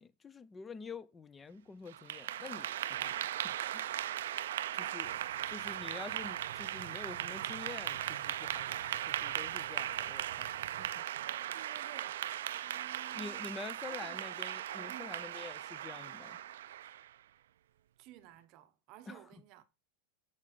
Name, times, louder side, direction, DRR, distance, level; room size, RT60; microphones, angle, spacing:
voice 1, 0.0-3.9 4.7-8.8 9.1-10.5 10.8-11.0 13.1-16.4 19.1-19.2, left 4 dB, 10° left, 0.3 m, -48 dB
Clapping / Applause, 1.9-17.1, right 12 dB, 90° right, 0.3 m, -38 dB
sound 1, 4.0-10.1, left 6 dB, 75° left, 2.2 m, -68 dB
sound 2, 5.0-10.9, right 12 dB, 75° right, 0.7 m, -54 dB
voice 2, 11.5-12.2 12.5-13.5 13.8-14.3 14.9-15.2 18.0-19.7, right 15 dB, 35° right, 0.7 m, -55 dB
6.6 x 5.4 x 4.9 m
supercardioid pair, 175°, 0 cm